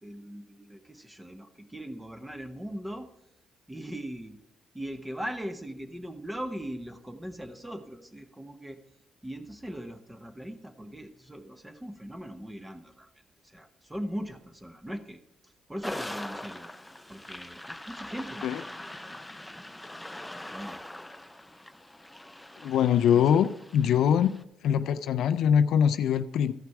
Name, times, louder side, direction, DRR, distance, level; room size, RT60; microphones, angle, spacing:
voice 1, 0.0-3.1 3.7-4.4 4.7-8.8 9.2-13.1 13.4-15.2 15.4-16.7 17.1-19.6 20.5-20.8 23.1-23.2 23.8-24.0, equal, 10° right, 8 dB, 1.0 m, -40 dB
sound 1, 15.8-24.4, left 1 dB, 10° left, 0.5 m, -42 dB
voice 2, 22.6-24.3 24.6-26.5, left 8 dB, 75° left, 11 dB, 0.4 m, -23 dB
13.5 x 5.9 x 4.7 m, 0.82 s
cardioid pair, 90°, 0 cm